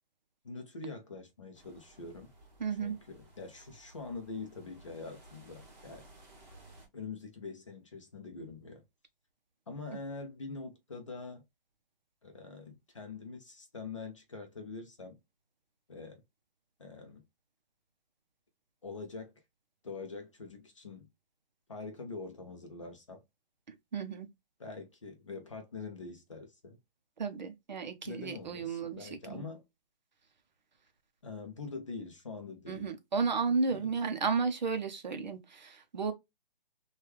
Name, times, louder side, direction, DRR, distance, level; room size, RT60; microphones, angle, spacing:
voice 1, 0.4-2.3 2.8-6.0 6.9-8.8 9.7-11.4 12.2-15.2 15.9-16.2 16.8-17.2 18.8-19.3 19.8-21.1 21.7-23.2 24.6-26.8 28.0-29.6 31.2-32.9 33.7-33.9, left 4 dB, 35° left, 0.5 m, -44 dB
sound 1, 1.5-6.9, right 2 dB, 15° right, 1.1 m, -57 dB
voice 2, 2.6-3.0 9.9-10.0 23.7-24.3 27.2-29.5 32.7-36.1, right 5 dB, 50° right, 0.6 m, -33 dB
3.1 x 2.3 x 3.1 m
hypercardioid pair, 170°, 29 cm